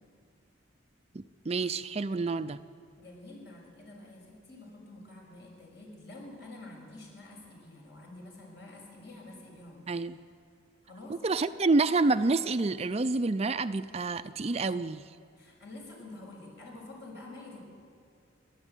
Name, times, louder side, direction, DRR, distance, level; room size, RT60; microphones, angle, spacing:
voice 1, 1.1-2.6 9.9-10.2 11.2-15.1, right 3 dB, 30° right, 11 dB, 0.5 m, -28 dB
voice 2, 3.0-9.9 10.8-11.2 15.4-17.7, left 2 dB, 55° left, -1 dB, 6.4 m, -48 dB
29.5 x 12.0 x 9.0 m, 2.3 s
head